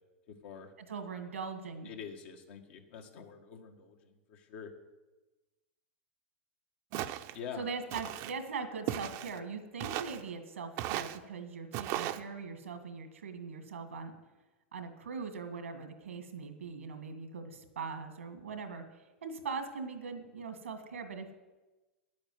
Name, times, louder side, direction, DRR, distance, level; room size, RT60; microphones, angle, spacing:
voice 1, 0.3-0.7 1.8-4.7 7.3-7.7, left 7 dB, 65° left, 4 dB, 1.9 m, -46 dB
voice 2, 0.9-1.9 7.6-14.1 14.7-21.3, right 5 dB, 90° right, 7 dB, 1.9 m, -41 dB
Walk footsteps, 6.9-7.4 7.9-8.3 8.9-9.4 9.8-10.2 10.8-11.2 11.7-12.2, right 13 dB, 50° right, 0.8 m, -36 dB
10.5 x 8.6 x 7.8 m, 1.1 s
hypercardioid pair, 105°, 7 cm